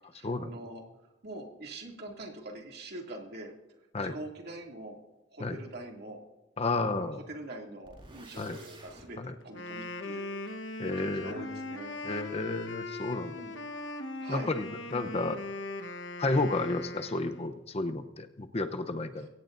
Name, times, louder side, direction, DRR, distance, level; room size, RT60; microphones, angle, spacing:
voice 1, 0.1-0.8 1.2-3.5 4.1-5.0 5.3-6.2 7.0-10.4 11.0-12.0 13.2-13.6 14.2-14.5 19.2-19.3, right 2 dB, 60° right, 0 dB, 2.6 m, -44 dB
voice 2, 6.6-7.2 8.4-8.6 9.2-9.3 10.8-11.5 12.0-13.3 14.3-15.4 16.2-19.3, left 2 dB, 35° left, 8 dB, 0.8 m, -32 dB
sound 1, 7.8-9.0, right 2 dB, 30° right, 4.9 m, -51 dB
Wind instrument woodwind instrument, 9.4-17.6, left 2 dB, 75° left, 1.4 m, -40 dB
23.5 x 17.0 x 2.6 m, 1.1 s
head